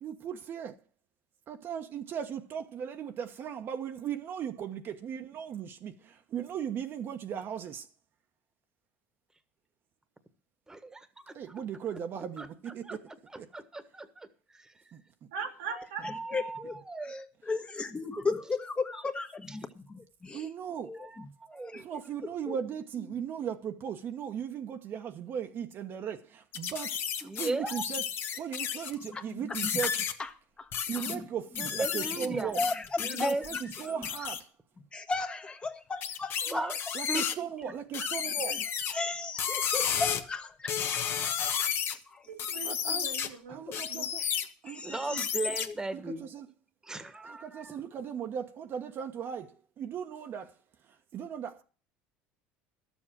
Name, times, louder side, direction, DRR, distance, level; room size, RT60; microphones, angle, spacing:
voice 1, 0.0-0.7 1.5-7.8 11.3-13.1 13.4-13.5 14.9-15.0 20.3-20.9 21.7-28.1 28.3-29.9 30.9-32.6 33.2-34.5 36.9-38.7 42.6-43.1 43.5-44.2 44.6-45.3 45.9-46.5 47.2-50.5 50.9-51.6, right 8 dB, 50° right, 1.1 m, -37 dB
voice 2, 10.7-11.4 12.4-13.0 13.3-14.3 14.5-14.7 15.7-17.2 20.9-21.1 21.4-22.0 27.2-27.8 31.8-32.5 33.0-33.5 33.8-34.0 36.4-36.8 37.1-37.2 37.9-38.0 44.8-46.2 46.8-47.8, right 2 dB, 10° right, 1.5 m, -37 dB
voice 3, 15.3-16.4 42.3-44.1, right 6 dB, 90° right, 2.2 m, -41 dB
voice 4, 16.3-16.7 17.5-20.5 20.8-21.8 22.5-22.6 29.1-29.7 30.2-30.3 30.6-31.3 31.6-31.7 32.6-33.3 34.2-34.3 34.9-36.7 38.5-41.1 41.6-42.3 43.7-43.8 44.2-44.4 44.6-45.3, left 4 dB, 20° left, 1.4 m, -36 dB
sound 1, 26.5-29.1 29.5-30.1 30.7-31.1 31.5-34.4 36.0-37.3 37.9-38.9 39.4-40.2 40.7-41.9 42.4-43.3 43.7-44.5 45.2-45.7, left 8 dB, 50° left, 1.3 m, -32 dB
12.0 x 7.3 x 7.5 m
supercardioid pair, 95°, 5 cm